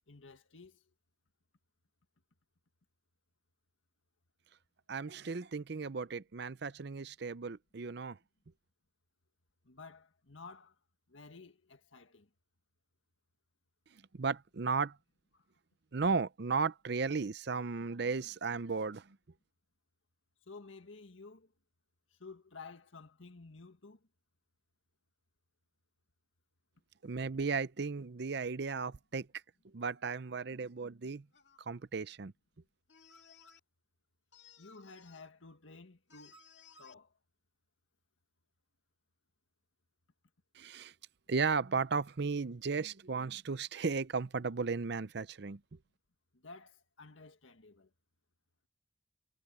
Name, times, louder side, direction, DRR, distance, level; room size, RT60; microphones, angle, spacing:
voice 1, 0.1-0.8 9.6-10.8 11.1-12.3 15.3-15.4 20.5-21.5 22.2-24.0 34.6-36.4 36.8-37.1 46.3-47.9, left 4 dB, 85° left, 1.8 m, -53 dB
voice 2, 4.9-8.2 14.1-15.0 15.9-19.2 27.0-29.3 29.7-31.2 31.7-32.3 40.6-40.9 41.3-45.6, right 4 dB, 60° right, 0.6 m, -35 dB
sound 1, 31.3-31.7 32.9-33.6 34.3-35.3 36.1-36.9, left 5 dB, 60° left, 2.4 m, -60 dB
head